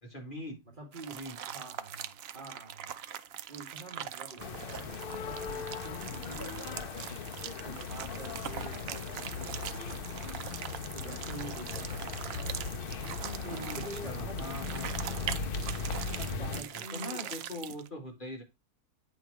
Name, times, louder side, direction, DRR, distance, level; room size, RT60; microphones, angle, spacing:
voice 1, 0.0-0.6 1.1-1.4 4.4-4.5 13.5-15.2 16.3-18.4, left 1 dB, 35° left, 2.0 m, -42 dB
voice 2, 0.6-1.2 1.5-3.0 3.5-10.3 10.9-12.7 13.4-15.5 16.1-17.4, right 2 dB, 35° right, 1.7 m, -47 dB
sound 1, 0.9-17.9, right 10 dB, 70° right, 0.6 m, -42 dB
sound 2, 4.4-16.6, left 5 dB, 50° left, 0.7 m, -38 dB
8.9 x 3.5 x 4.7 m
omnidirectional pair, 1.6 m